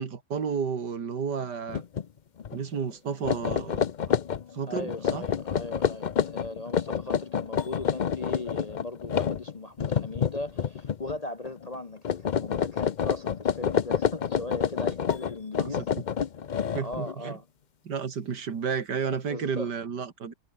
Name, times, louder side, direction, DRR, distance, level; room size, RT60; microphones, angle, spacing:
voice 1, 0.0-1.8 2.5-4.2 4.5-5.2 15.6-15.9 16.7-17.4 17.8-20.3, right 6 dB, 85° right, 2.6 m, -32 dB
sound 1, 1.7-2.1 2.4-2.6 3.1-11.2 11.4-11.8 12.0-17.1, left 7 dB, 65° left, 0.4 m, -28 dB
voice 2, 4.7-15.9 16.8-17.5 19.2-19.7, left 2 dB, 30° left, 0.8 m, -38 dB
omnidirectional pair, 1.8 m